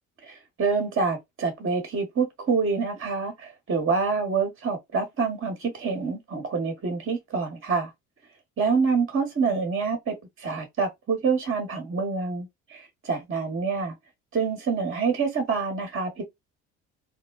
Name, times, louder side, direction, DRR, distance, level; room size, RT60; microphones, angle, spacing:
voice 1, 0.2-7.9 8.6-13.9 14.3-16.2, right 5 dB, 35° right, 1.1 m, -27 dB
3.1 x 2.1 x 2.3 m
hypercardioid pair, 60°, 36 cm